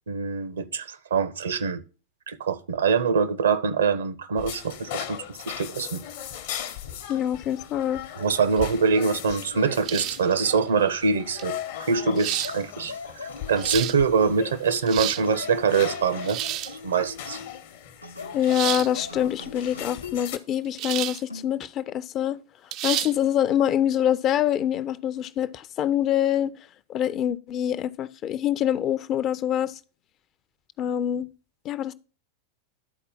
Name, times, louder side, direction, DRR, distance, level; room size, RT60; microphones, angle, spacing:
voice 1, 0.1-1.8 2.3-6.0 8.2-12.9 13.2-16.4 16.8-17.4, right 5 dB, 65° right, 0.7 m, -24 dB
sound 1, 4.4-20.4, left 10 dB, 55° left, 0.9 m, -39 dB
voice 2, 7.1-8.0 18.3-22.4 22.8-26.5 26.9-29.7 30.8-31.3 31.6-31.9, left 10 dB, 35° left, 0.5 m, -25 dB
sound 2, 9.8-10.3 11.4-11.5 12.2-12.5 13.4-14.0 14.7-15.3 16.2-16.8 18.5-18.9 20.8-21.2 21.6-21.7 22.7-23.1, right 14 dB, 40° right, 0.4 m, -30 dB
sound 3, 12.3-14.6 15.3-17.6 18.0-20.2 21.3-21.6, left 4 dB, 85° left, 0.7 m, -41 dB
11.0 x 4.3 x 5.3 m
figure-of-eight pair, 90°, 0 cm